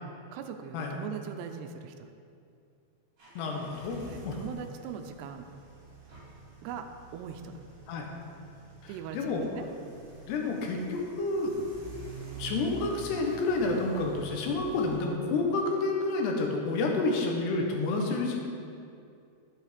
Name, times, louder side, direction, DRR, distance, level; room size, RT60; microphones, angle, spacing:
voice 1, 0.3-2.1 4.1-5.5 6.6-7.6 8.9-9.6, right 7 dB, 80° right, 7 dB, 2.6 m, -40 dB
sound 1, 3.2-15.1, right 3 dB, 30° right, 2.4 m, -47 dB
voice 2, 3.4-4.4 7.9-8.1 8.8-9.4 10.3-11.5 12.4-18.4, left 3 dB, 75° left, 1 dB, 3.2 m, -29 dB
11.0 x 8.2 x 5.1 m, 2.5 s
omnidirectional pair, 4.9 m